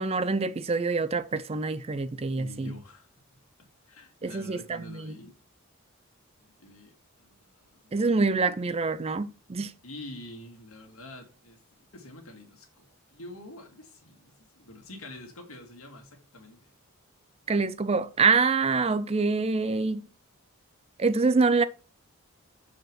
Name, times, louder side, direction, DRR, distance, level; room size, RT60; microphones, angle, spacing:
voice 1, 0.0-2.7 4.2-5.2 7.9-9.7 17.5-20.0 21.0-21.6, right 4 dB, 25° right, 0.4 m, -26 dB
voice 2, 2.3-3.1 3.9-5.3 6.4-8.3 9.8-11.6 11.9-16.7, left 1 dB, 75° left, 2.3 m, -47 dB
6.9 x 5.0 x 6.1 m
head